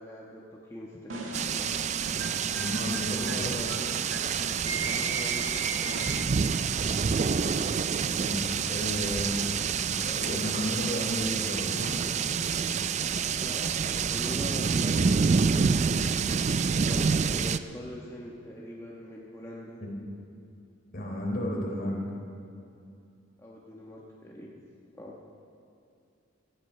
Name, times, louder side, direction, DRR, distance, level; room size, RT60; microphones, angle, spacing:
voice 1, 0.0-1.7 2.9-3.7 4.6-6.0 13.3-15.8 16.8-19.8 23.4-24.6 25.0-25.2, equal, 15° left, -4 dB, 1.2 m, -43 dB
sound 1, 1.1-6.5, right 3 dB, 75° right, 2.0 m, -37 dB
sound 2, 1.3-17.6, right 6 dB, 35° right, 0.4 m, -28 dB
voice 2, 2.5-3.6 8.1-9.4 9.8-12.1 19.8-19.9 20.9-22.0, left 1 dB, 50° left, -1 dB, 3.6 m, -33 dB
17.5 x 13.5 x 5.5 m, 2.6 s
head